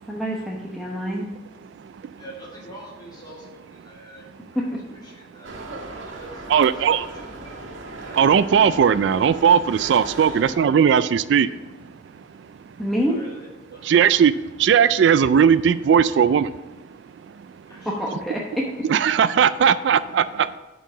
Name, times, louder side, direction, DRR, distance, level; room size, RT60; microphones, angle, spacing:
voice 1, 0.1-1.3 4.6-4.7 12.8-13.2 17.8-18.6, equal, ahead, -4 dB, 0.8 m, -26 dB
voice 2, 1.2-5.5 6.1-7.6 8.0-8.2 10.3-10.9 13.0-14.0 17.6-18.1, right 1 dB, 20° left, -3 dB, 2.4 m, -45 dB
sound 1, 5.4-10.5, right 2 dB, 85° right, 1.8 m, -37 dB
voice 3, 6.5-7.0 8.2-11.5 13.8-14.3 14.6-16.5 18.8-20.6, right 7 dB, 65° right, 15 dB, 0.3 m, -18 dB
9.1 x 4.6 x 6.1 m, 1.2 s
head